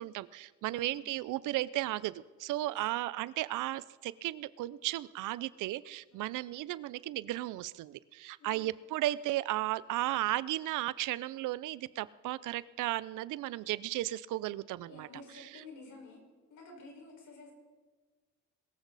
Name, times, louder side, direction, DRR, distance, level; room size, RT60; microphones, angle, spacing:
voice 1, 0.0-15.1 15.3-15.6, right 16 dB, 85° right, 18 dB, 0.6 m, -35 dB
voice 2, 0.7-1.1 2.7-2.8 6.1-6.3 8.4-8.6 14.9-16.2 16.5-17.5, left 3 dB, 75° left, 1 dB, 5.3 m, -51 dB
22.5 x 14.5 x 4.1 m, 1.4 s
cardioid pair, 90°, 30 cm